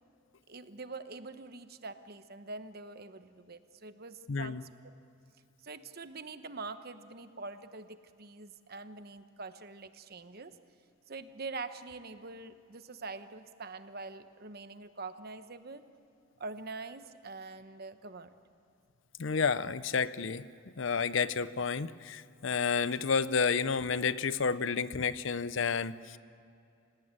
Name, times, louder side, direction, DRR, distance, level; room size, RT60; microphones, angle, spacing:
voice 1, 0.5-4.6 5.6-10.5 11.1-15.8 16.4-18.3, right 3 dB, 45° right, 10 dB, 1.0 m, -44 dB
voice 2, 4.3-4.6 19.2-20.5 20.8-26.2, left 5 dB, 60° left, 16 dB, 0.6 m, -30 dB
27.5 x 17.5 x 8.9 m, 2.5 s
head